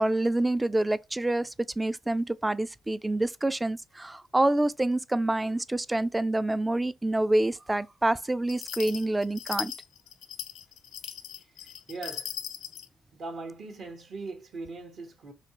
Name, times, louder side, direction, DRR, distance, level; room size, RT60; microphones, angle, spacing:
voice 1, 0.0-9.7, right 1 dB, 10° right, 0.3 m, -27 dB
sound 1, 8.5-12.9, left 9 dB, 80° left, 0.5 m, -38 dB
voice 2, 11.9-12.3 13.1-15.3, right 3 dB, 60° right, 1.2 m, -40 dB
4.2 x 2.8 x 2.9 m
cardioid pair, 95°, 0 cm